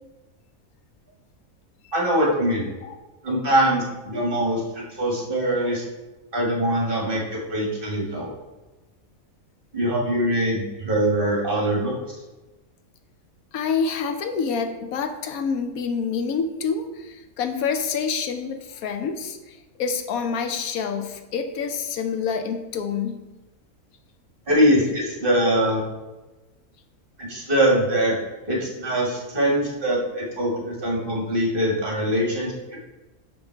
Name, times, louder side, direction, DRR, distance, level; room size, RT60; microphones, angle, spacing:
voice 1, 1.9-2.7 3.2-5.8 6.3-8.3 9.7-11.9 24.5-25.8 27.2-28.2 28.5-32.5, equal, 40° right, -3 dB, 1.7 m, -23 dB
voice 2, 13.5-23.3, left 6 dB, 80° left, 7 dB, 1.1 m, -27 dB
5.8 x 5.3 x 4.5 m, 1.1 s
omnidirectional pair, 1.5 m